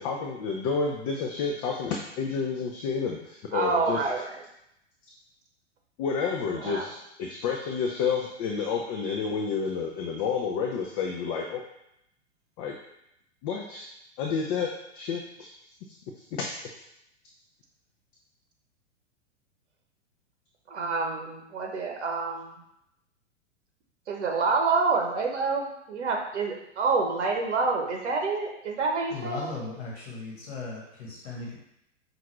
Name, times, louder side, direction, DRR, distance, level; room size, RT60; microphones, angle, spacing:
voice 1, 0.0-4.0 6.0-11.6 12.6-12.7 13.4-13.9 14.2-15.5 16.3-16.4, left 5 dB, 30° left, 0 dB, 0.5 m, -30 dB
voice 2, 3.5-4.4 6.6-6.9 20.7-22.6 24.1-29.5, right 4 dB, 65° right, 2 dB, 0.8 m, -27 dB
voice 3, 29.1-31.6, left 3 dB, 55° left, -4 dB, 1.3 m, -37 dB
5.6 x 2.6 x 3.1 m, 0.80 s
figure-of-eight pair, 105°, 36 cm